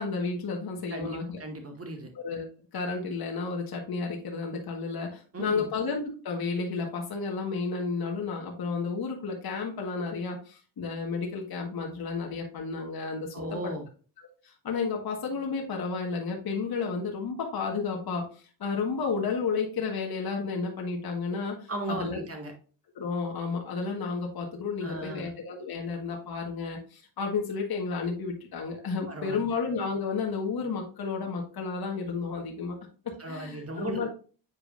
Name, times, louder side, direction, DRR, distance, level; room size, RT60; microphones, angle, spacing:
voice 1, 0.0-1.4 2.1-2.5 2.7-13.6 14.4-22.2 22.9-32.8 33.3-34.1, left 4 dB, 50° left, 0 dB, 1.6 m, -32 dB
voice 2, 0.9-2.1 5.3-5.7 13.3-13.8 21.7-22.5 24.8-25.3 29.1-29.4 33.2-34.1, right 2 dB, 30° right, 4 dB, 2.1 m, -36 dB
8.4 x 4.8 x 2.6 m, 0.38 s
supercardioid pair, 70°, 48 cm